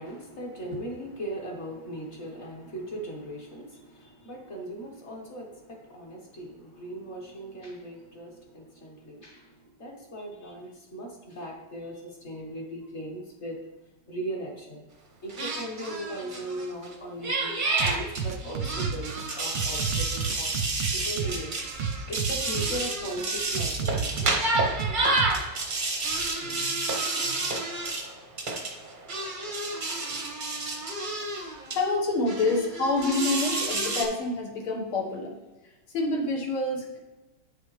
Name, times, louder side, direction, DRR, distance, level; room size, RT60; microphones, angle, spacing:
voice 1, 0.0-13.6 14.1-14.8 15.2-17.6 17.8-24.2, right 1 dB, 35° left, -1 dB, 1.4 m, -38 dB
sound 1, 15.3-16.9 17.2-31.8 32.3-34.0, right 2 dB, 35° right, 0.7 m, -30 dB
sound 2, 17.8-25.8, right 6 dB, 70° right, 1.1 m, -32 dB
voice 2, 23.8-24.5 25.8-25.9 26.4-26.8 27.2-27.4 31.8-35.4 35.9-37.0, left 2 dB, 80° left, -1 dB, 2.2 m, -28 dB
9.1 x 6.5 x 3.2 m, 1.1 s
omnidirectional pair, 2.3 m